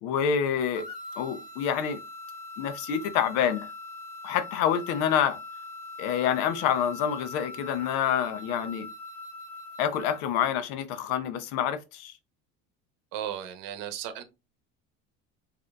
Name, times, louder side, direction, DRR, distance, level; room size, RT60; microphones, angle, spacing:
voice 1, 0.0-0.9 1.2-2.0 2.6-3.7 4.2-5.4 6.0-8.9 9.8-12.2, left 8 dB, 85° left, 0.7 m, -27 dB
sound 1, 0.7-10.3, left 2 dB, 65° left, 1.1 m, -42 dB
voice 2, 13.1-14.2, right 10 dB, 75° right, 0.8 m, -35 dB
5.0 x 2.7 x 2.2 m
cardioid pair, 115°, 33 cm